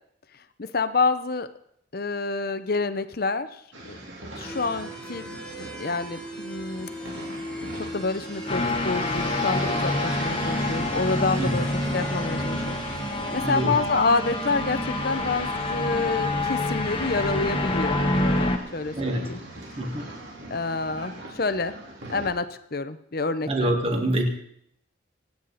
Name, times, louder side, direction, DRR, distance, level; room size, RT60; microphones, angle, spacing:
voice 1, 0.6-1.5 1.9-3.6 3.9-4.0 4.4-6.9 7.8-12.8 13.0-19.4 20.5-21.7 22.1-23.8, left 3 dB, 50° left, 12 dB, 0.8 m, -28 dB
sound 1, 3.7-22.3, right 2 dB, 80° right, 3.7 m, -38 dB
sound 2, 4.4-13.6, left 1 dB, 5° left, 2.1 m, -39 dB
sound 3, 8.5-18.6, left 2 dB, 30° left, 1.4 m, -27 dB
voice 2, 13.4-13.7 19.0-19.4 19.8-20.1 23.5-24.3, right 1 dB, 30° right, 3 dB, 2.1 m, -26 dB
25.5 x 9.5 x 4.2 m, 0.71 s
head